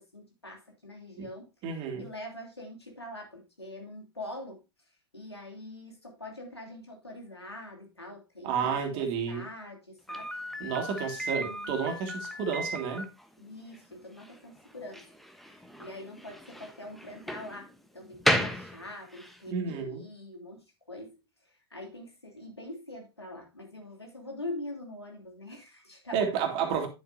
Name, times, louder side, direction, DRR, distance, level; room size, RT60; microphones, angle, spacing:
voice 1, 0.0-1.5 2.0-4.6 5.1-10.3 10.9-11.7 13.4-15.1 15.3-21.2 21.5-26.3, left 1 dB, 90° left, 2.8 m, -44 dB
voice 2, 1.6-2.1 8.4-9.4 10.6-13.1 19.5-20.0 26.1-26.9, right 6 dB, 40° right, 2.4 m, -31 dB
Slam, 10.1-19.4, equal, ahead, 1.0 m, -35 dB
9.6 x 8.2 x 2.6 m
figure-of-eight pair, 95°, 13 cm